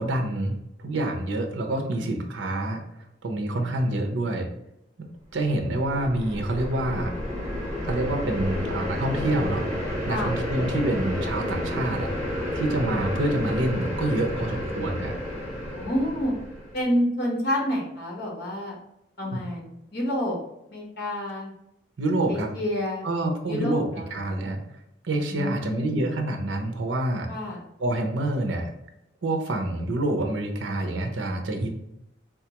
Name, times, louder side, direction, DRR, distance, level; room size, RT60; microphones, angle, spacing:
voice 1, 0.0-2.8 3.2-4.5 5.3-7.1 7.8-12.1 12.5-15.1 19.3-19.4 22.0-22.5 23.0-23.8 24.1-24.6 25.0-27.3 27.8-28.7 29.2-31.7, right 1 dB, 80° right, 3 dB, 0.6 m, -27 dB
sound 1, 5.4-16.8, left 1 dB, 5° left, 1.1 m, -31 dB
voice 2, 15.8-16.4 16.7-18.8 19.2-20.4 20.7-21.5 22.3-23.1 23.5-24.2 25.3-26.0 27.3-27.6, left 1 dB, 55° left, -1 dB, 1.0 m, -28 dB
3.6 x 2.3 x 2.9 m, 0.83 s
head